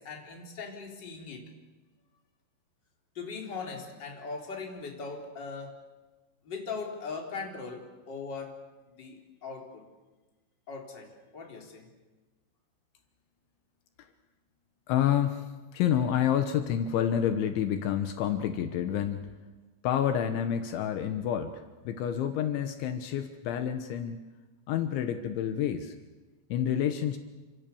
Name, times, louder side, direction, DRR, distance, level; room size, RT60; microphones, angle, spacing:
voice 1, 0.0-1.5 3.2-5.9 6.4-8.6 9.0-9.8 10.7-11.9, left 4 dB, 25° left, 1 dB, 3.7 m, -40 dB
voice 2, 14.9-19.2 19.8-24.2 24.7-26.0 26.5-27.2, left 9 dB, 75° left, 7 dB, 3.4 m, -29 dB
29.0 x 26.5 x 7.0 m, 1.2 s
omnidirectional pair, 5.6 m